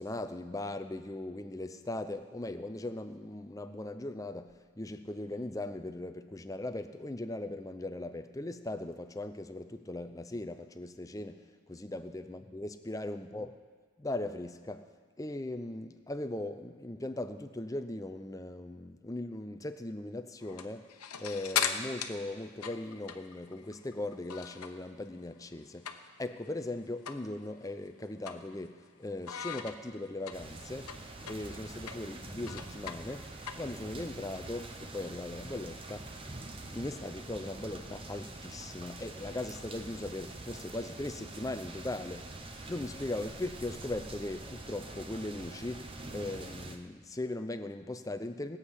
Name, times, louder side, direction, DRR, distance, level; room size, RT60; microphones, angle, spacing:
voice 1, 0.0-13.5 14.0-14.9 15.2-20.9 21.2-31.0 31.2-36.1 36.7-42.3 42.7-48.6, left 2 dB, 15° left, 9 dB, 0.5 m, -39 dB
sound 1, 20.4-24.9 25.2-26.4 26.6-26.7 27.1-27.3 27.6-28.9 29.3-34.1, left 8 dB, 90° left, 0.9 m, -38 dB
sound 2, 30.3-46.8, right 2 dB, 25° right, 0.7 m, -45 dB
20.0 x 8.1 x 5.7 m, 1.5 s
head